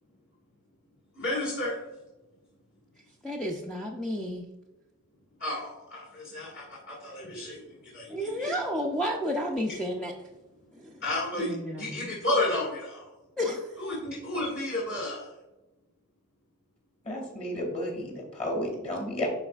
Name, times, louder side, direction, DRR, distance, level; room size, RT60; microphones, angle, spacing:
voice 1, 1.1-1.8 5.4-8.5 11.0-13.1 13.8-15.3, left 1 dB, 45° left, -7 dB, 2.1 m, -32 dB
voice 2, 3.2-4.5 8.1-10.1 10.7-11.0 11.4-12.1 13.4-13.7, equal, 5° left, -2 dB, 0.5 m, -31 dB
voice 3, 17.0-19.3, left 1 dB, 30° left, 0 dB, 2.2 m, -32 dB
11.5 x 4.2 x 2.4 m, 1.0 s
head